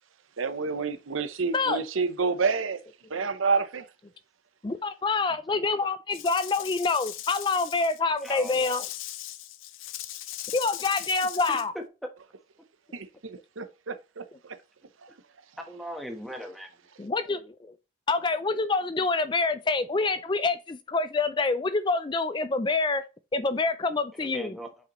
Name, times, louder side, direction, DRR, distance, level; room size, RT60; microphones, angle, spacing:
voice 1, 0.4-2.8 3.1-3.9 12.9-14.6, right 4 dB, 90° right, 0.8 m, -29 dB
voice 2, 4.6-8.8 10.5-11.7 17.0-17.7 18.1-23.0 23.3-24.5, left 3 dB, 25° left, 0.4 m, -26 dB
voice 3, 5.3-5.6 8.2-8.8 11.5-11.6 15.6-16.7 24.1-24.7, equal, ahead, 1.1 m, -39 dB
Rattle / Rattle (instrument), 6.1-11.7, left 13 dB, 85° left, 0.5 m, -39 dB
8.1 x 5.0 x 3.1 m
head